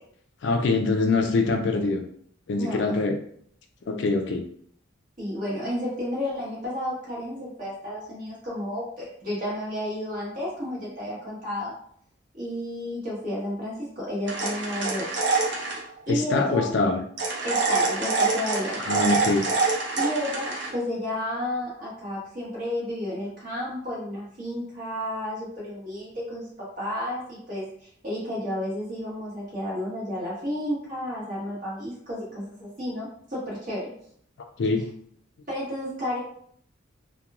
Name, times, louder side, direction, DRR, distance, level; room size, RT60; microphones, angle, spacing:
voice 1, 0.4-2.0 2.5-3.2 3.8-4.4 16.1-17.0 18.8-19.5 34.6-34.8, left 3 dB, 60° left, 4 dB, 0.3 m, -24 dB
voice 2, 5.2-11.7 12.3-15.1 16.1-16.7 17.4-18.9 20.0-33.9 35.5-36.2, left 1 dB, 40° right, -7 dB, 1.3 m, -32 dB
sound 1, 14.3-15.8 17.2-20.7, right 3 dB, 60° right, 0.6 m, -26 dB
2.9 x 2.2 x 2.4 m, 0.64 s
head